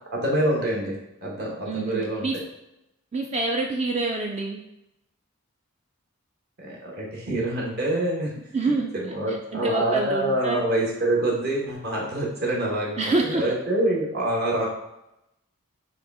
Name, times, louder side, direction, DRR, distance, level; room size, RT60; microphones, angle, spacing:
voice 1, 0.1-0.9 1.2-2.4 6.6-8.3 8.9-14.7, right 1 dB, 50° right, -3 dB, 1.1 m, -26 dB
voice 2, 1.6-2.4 3.1-4.6 8.5-10.6 13.0-13.4, right 3 dB, 30° right, 2 dB, 0.3 m, -27 dB
6.3 x 2.3 x 3.5 m, 0.86 s
head